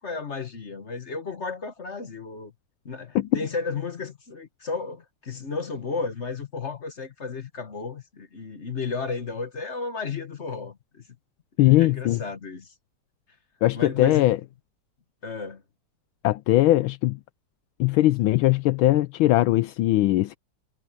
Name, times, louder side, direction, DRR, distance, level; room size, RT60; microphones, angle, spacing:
voice 1, 0.0-2.5 2.8-11.0 11.6-12.7 13.7-14.4 15.2-15.6, left 4 dB, 35° left, 1.3 m, -33 dB
voice 2, 11.6-12.2 13.6-14.4 16.2-17.2 17.8-20.4, left 16 dB, 80° left, 1.4 m, -20 dB
omnidirectional pair, 2.4 m